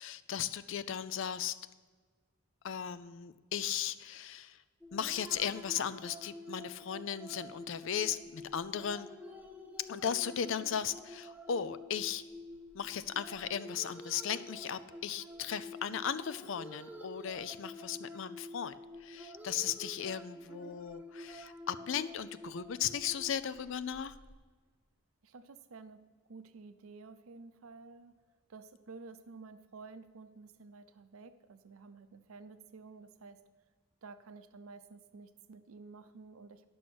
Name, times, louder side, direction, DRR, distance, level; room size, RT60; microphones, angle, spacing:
voice 1, 0.0-1.6 2.6-4.6 4.9-9.1 9.9-12.2 12.7-18.7 19.0-24.1, left 8 dB, 55° left, 15 dB, 0.4 m, -36 dB
sound 1, 4.8-24.3, left 1 dB, 5° right, 0.7 m, -49 dB
voice 2, 25.2-26.0 26.3-28.2 28.5-33.4 34.0-36.6, right 4 dB, 70° right, 11 dB, 0.6 m, -52 dB
11.0 x 6.2 x 6.1 m, 1.4 s
head